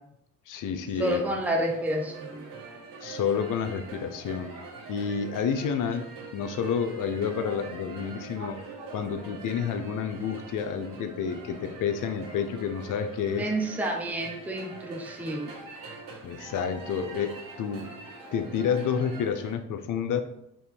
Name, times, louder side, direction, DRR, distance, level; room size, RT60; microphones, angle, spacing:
voice 1, 0.5-1.2 3.0-4.5 4.9-8.6 8.9-13.5 16.2-17.9 18.3-20.2, left 7 dB, 60° left, 9 dB, 0.6 m, -29 dB
sound 1, 0.9-19.5, right 4 dB, 65° right, 1.4 m, -43 dB
voice 2, 1.0-2.5 13.4-15.6, right 1 dB, 5° right, 0 dB, 0.7 m, -29 dB
3.4 x 3.0 x 4.3 m, 0.80 s
supercardioid pair, 65°, 36 cm